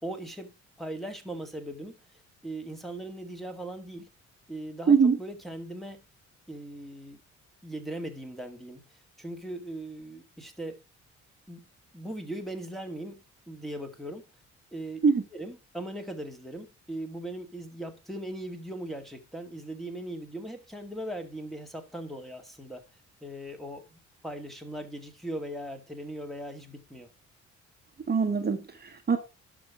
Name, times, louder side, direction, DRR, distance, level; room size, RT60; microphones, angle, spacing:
voice 1, 0.0-4.1 4.5-6.0 6.5-7.2 7.6-10.8 11.5-11.7 11.9-14.2 14.7-15.0 15.3-22.8 23.2-27.1, right 1 dB, ahead, 2.1 m, -39 dB
voice 2, 4.9-5.2 15.0-15.2 28.1-29.2, right 5 dB, 30° right, 1.4 m, -23 dB
11.0 x 6.1 x 4.9 m
cardioid pair, 90°, 30 cm